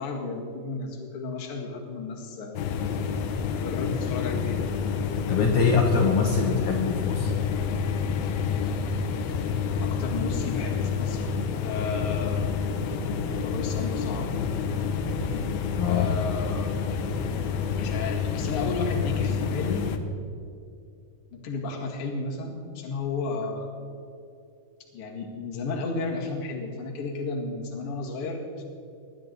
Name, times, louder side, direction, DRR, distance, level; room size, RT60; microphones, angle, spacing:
voice 1, 0.0-2.6 3.6-4.7 9.8-11.3 11.6-12.5 13.4-14.3 15.9-16.8 17.8-19.9 21.3-23.7 24.9-28.6, left 3 dB, 45° left, 0 dB, 2.2 m, -33 dB
sound 1, 2.6-20.0, left 6 dB, 85° left, 2.8 m, -28 dB
voice 2, 5.3-7.3 15.8-16.3, left 5 dB, 65° left, 2 dB, 2.1 m, -23 dB
19.5 x 11.5 x 4.0 m, 2.5 s
omnidirectional pair, 4.5 m